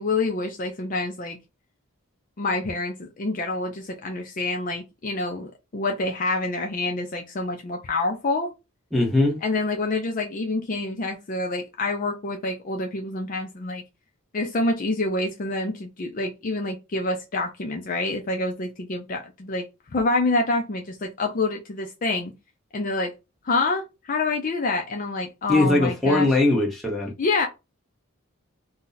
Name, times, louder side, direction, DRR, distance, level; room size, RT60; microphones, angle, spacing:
voice 1, 0.0-1.4 2.4-8.5 9.4-13.8 14.3-19.6 19.9-22.3 22.7-23.1 23.4-26.3 27.2-27.5, left 2 dB, 35° left, 0.4 m, -27 dB
voice 2, 8.9-9.4 25.5-27.1, left 2 dB, ahead, 0.9 m, -20 dB
2.7 x 2.1 x 3.8 m
head